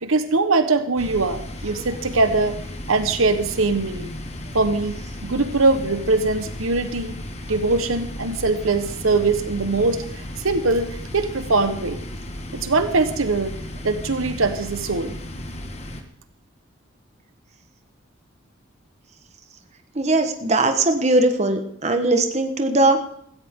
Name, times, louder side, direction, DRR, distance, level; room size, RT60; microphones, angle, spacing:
voice 1, 0.0-2.6 2.9-4.1 4.5-7.2 7.5-10.0 10.4-12.0 12.5-13.5 13.8-15.2, right 3 dB, 90° right, 10 dB, 1.2 m, -22 dB
sound 1, 1.0-16.0, left 1 dB, 30° left, 1.4 m, -34 dB
voice 2, 19.9-23.0, right 2 dB, 35° right, 6 dB, 1.2 m, -19 dB
16.5 x 14.0 x 3.7 m, 0.69 s
head